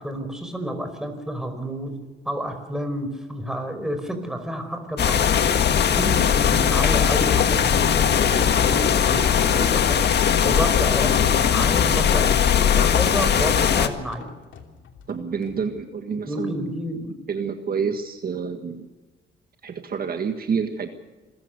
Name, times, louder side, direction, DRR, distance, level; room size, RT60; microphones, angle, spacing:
voice 1, 0.0-1.9 2.3-5.5 5.9-12.3 12.6-14.3 16.3-17.2, equal, 5° right, 6 dB, 5.2 m, -30 dB
sound 1, 5.0-13.9, left 8 dB, 55° left, 1.7 m, -19 dB
sound 2, 7.6-15.8, left 6 dB, 70° left, 2.8 m, -40 dB
voice 2, 15.1-16.8 17.3-18.9 19.6-20.9, right 6 dB, 50° right, 6 dB, 1.7 m, -28 dB
26.5 x 15.0 x 6.7 m, 1.3 s
cardioid pair, 90°, 20 cm